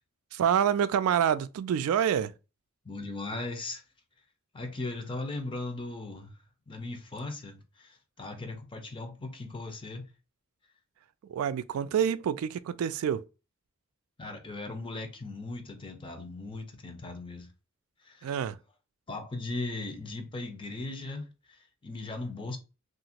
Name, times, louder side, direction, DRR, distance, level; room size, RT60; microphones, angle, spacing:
voice 1, 0.3-2.3 11.3-13.2 18.2-18.6, right 8 dB, 85° right, 0.3 m, -27 dB
voice 2, 2.8-3.8 4.5-6.3 6.7-10.1 14.2-17.5 18.0-18.4 19.1-22.6, left 2 dB, 25° left, 0.6 m, -38 dB
2.8 x 2.5 x 2.8 m
head